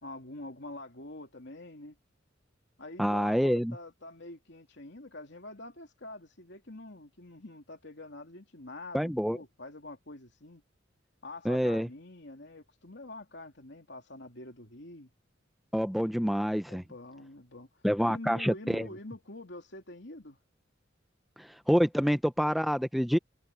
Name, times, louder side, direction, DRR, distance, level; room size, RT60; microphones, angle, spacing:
voice 1, 0.0-2.0 2.8-10.6 11.2-15.1 16.7-20.4, left 2 dB, 65° left, 3.2 m, -46 dB
voice 2, 3.0-3.8 8.9-9.4 11.4-11.9 15.7-16.8 17.8-18.9 21.4-23.2, equal, ahead, 0.6 m, -27 dB
head